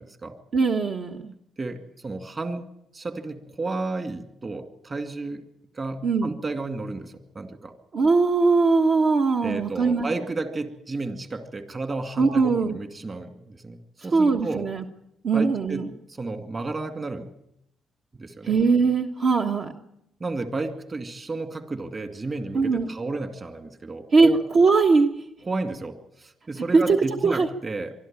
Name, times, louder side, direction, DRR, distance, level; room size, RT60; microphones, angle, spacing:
voice 1, 0.0-0.4 1.6-2.6 2.9-5.4 5.7-7.7 9.4-13.8 14.0-14.7 15.3-15.9 16.2-17.3 18.1-18.6 20.2-24.4 25.4-27.9, right 3 dB, 30° right, 8 dB, 2.3 m, -32 dB
voice 2, 0.5-1.3 6.0-6.4 7.9-10.0 12.2-12.8 14.1-14.8 15.2-15.9 18.4-19.7 22.5-22.9 24.1-25.1 26.7-27.0 27.2-27.5, right 4 dB, 55° right, 3 dB, 1.4 m, -20 dB
24.0 x 12.5 x 9.0 m, 0.79 s
cardioid pair, 90°, 0 cm